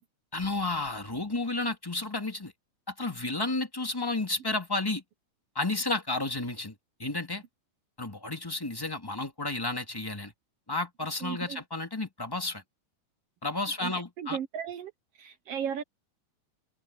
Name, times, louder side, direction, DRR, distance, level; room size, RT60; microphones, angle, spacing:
voice 1, 0.3-2.5 2.9-5.0 5.5-6.7 7.0-7.4 8.0-10.3 10.7-12.6 13.4-14.4, left 2 dB, 10° left, 1.7 m, -32 dB
voice 2, 11.2-11.6 13.8-15.8, right 8 dB, 75° right, 1.4 m, -36 dB
open air
omnidirectional pair, 3.8 m